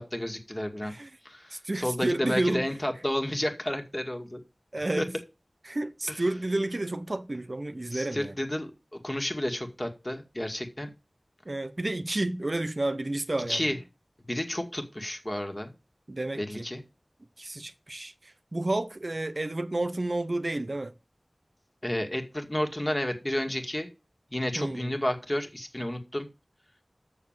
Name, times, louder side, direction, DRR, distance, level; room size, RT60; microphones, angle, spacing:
voice 1, 0.0-0.9 1.2-4.4 5.0-5.1 6.1-6.2 7.9-10.9 13.5-13.8 14.3-15.7 16.3-16.8 21.8-23.9 24.3-26.3, left 1 dB, 30° left, 2.1 m, -31 dB
voice 2, 1.5-2.7 4.7-5.1 5.7-8.4 11.5-13.7 16.1-16.7 17.4-20.9 24.6-25.0, right 2 dB, 55° right, 0.8 m, -31 dB
7.0 x 6.6 x 7.4 m
wide cardioid pair, 40°, 0 cm